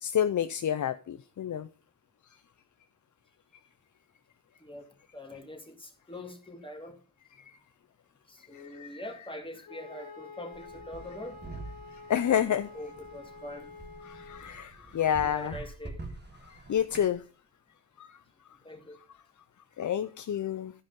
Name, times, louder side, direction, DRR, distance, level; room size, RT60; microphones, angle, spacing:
voice 1, 0.0-1.7 7.4-7.5 8.8-8.9 12.1-12.7 14.0-15.6 16.7-17.2 18.0-18.1 19.8-20.7, left 9 dB, 55° left, 0.5 m, -29 dB
voice 2, 4.6-7.0 8.3-11.4 12.3-13.7 15.1-16.0 18.6-19.0, left 1 dB, 15° left, 2.2 m, -44 dB
Wind instrument woodwind instrument, 9.6-14.5, left 4 dB, 75° left, 1.7 m, -48 dB
sound 1, 10.5-17.1, right 2 dB, 30° right, 1.8 m, -46 dB
12.5 x 5.2 x 5.3 m
cardioid pair, 65°, 36 cm